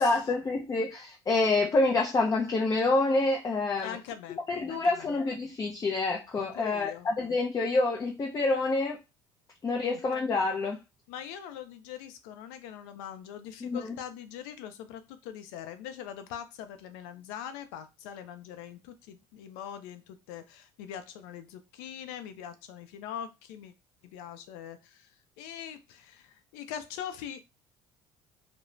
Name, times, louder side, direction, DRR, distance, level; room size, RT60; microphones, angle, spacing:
voice 1, 0.0-4.0 4.5-9.0 9.6-10.8 13.6-14.0, left 3 dB, 30° left, 1 dB, 0.5 m, -27 dB
voice 2, 3.8-4.4 4.7-5.1 6.5-7.1 9.8-10.0 11.1-23.7 24.0-25.1 25.4-27.4, left 9 dB, 80° left, 9 dB, 0.5 m, -42 dB
2.4 x 2.0 x 3.1 m, 0.25 s
supercardioid pair, 80°, 11 cm